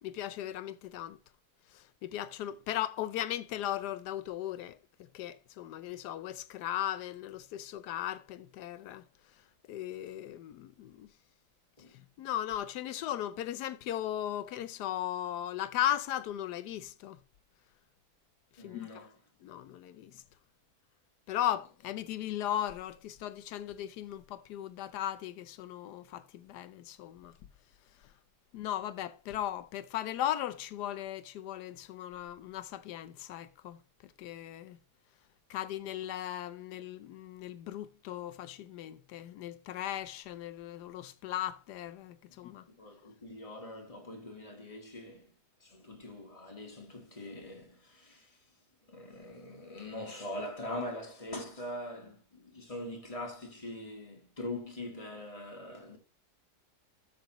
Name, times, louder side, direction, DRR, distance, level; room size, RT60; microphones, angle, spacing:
voice 1, 0.0-1.2 1.7-4.8 5.1-9.0 9.7-11.1 11.9-17.2 18.6-19.1 19.4-20.2 21.3-27.3 28.5-33.8 34.0-34.8 35.5-42.6, left 12 dB, 90° left, 1.3 m, -37 dB
voice 2, 18.6-19.1 42.8-45.3 45.6-48.4 48.9-56.0, left 1 dB, 20° left, 1.5 m, -42 dB
13.0 x 6.4 x 3.0 m
omnidirectional pair, 1.7 m